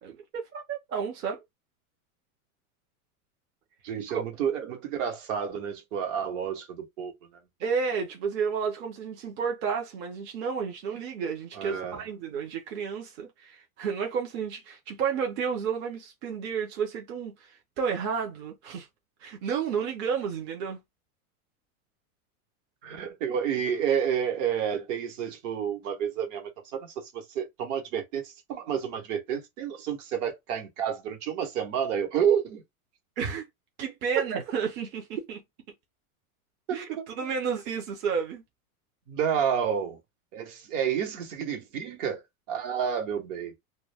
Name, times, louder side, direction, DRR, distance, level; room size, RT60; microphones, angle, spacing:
voice 1, 0.0-1.4 4.1-4.2 7.6-17.3 17.8-18.9 19.2-20.8 33.2-33.5 33.8-35.4 36.7-36.9 37.2-38.4, right 6 dB, 25° right, 0.5 m, -31 dB
voice 2, 3.8-7.1 11.6-12.0 22.8-32.6 34.2-34.3 36.7-37.0 39.1-40.0 40.3-42.2 42.5-43.5, right 8 dB, 55° right, 1.0 m, -30 dB
2.2 x 2.1 x 3.3 m
supercardioid pair, 135°, 45 cm